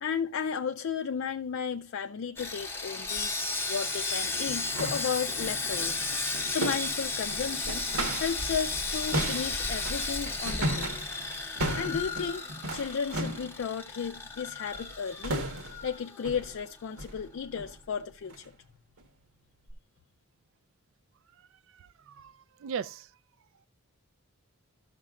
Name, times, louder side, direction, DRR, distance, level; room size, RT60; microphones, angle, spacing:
voice 1, 0.0-6.0 6.5-10.9 11.8-15.4 15.8-18.5, left 6 dB, 55° left, 0.3 m, -34 dB
Sawing, 2.4-16.6 16.9-17.0 17.5-17.6, left 3 dB, 10° left, 0.7 m, -34 dB
sound 1, 3.6-3.7 4.2-8.5 8.7-13.6 14.7-15.0 15.2-15.9 16.2-16.5 17.0-17.2 17.6-17.8 18.2-18.5 19.0-19.1 19.7-19.8, right 1 dB, 85° right, 1.4 m, -36 dB
voice 2, 21.4-23.1, right 7 dB, 60° right, 0.3 m, -40 dB
13.5 x 6.5 x 2.4 m
head